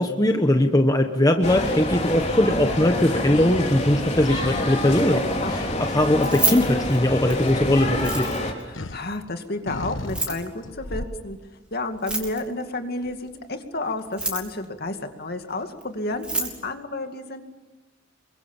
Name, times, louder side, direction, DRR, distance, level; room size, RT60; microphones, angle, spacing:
voice 1, 0.0-8.3, left 1 dB, 20° left, 5 dB, 1.2 m, -20 dB
sound 1, 0.7-1.2 3.4-3.8 4.2-6.0 6.4-9.2 9.6-11.3 12.1-12.3 13.0-13.1, left 2 dB, 75° left, 1.2 m, -37 dB
sound 2, 1.4-8.5, left 1 dB, 35° left, 3.9 m, -27 dB
voice 2, 5.4-5.9 8.5-11.4 11.7-17.4, left 2 dB, 50° left, 6 dB, 2.3 m, -31 dB
Keys jangling, 6.1-7.5 7.9-8.6 10.0-10.5 11.9-12.6 14.0-14.6 15.8-15.9 16.1-16.6, right 2 dB, 5° right, 3.4 m, -28 dB
28.0 x 23.5 x 7.3 m, 1.1 s
head